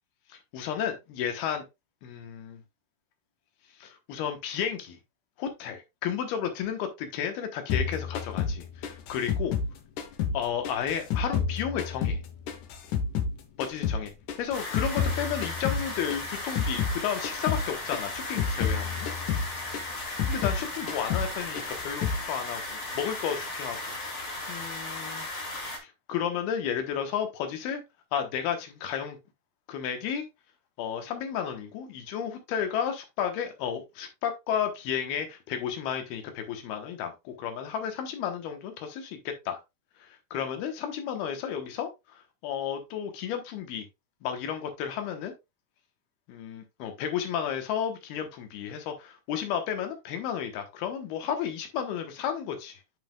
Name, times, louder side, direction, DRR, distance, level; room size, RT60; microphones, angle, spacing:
voice 1, 0.5-1.7 2.0-2.6 3.8-5.0 5.4-9.5 10.3-12.2 13.6-19.1 20.3-24.0 24.5-25.3 26.1-27.8 28.1-29.2 29.7-30.2 30.8-39.6 40.0-41.9 42.4-43.9 44.2-45.3 46.3-52.8, left 8 dB, 85° left, 3.1 m, -32 dB
sound 1, 7.7-10.4 10.6-13.3 13.6-17.0 17.2-17.7 17.9-20.6 20.9-21.3 21.6-22.2, left 6 dB, 65° left, 2.2 m, -30 dB
sound 2, 14.5-25.8, left 2 dB, 50° left, 0.8 m, -36 dB
9.4 x 5.7 x 2.3 m
omnidirectional pair, 4.4 m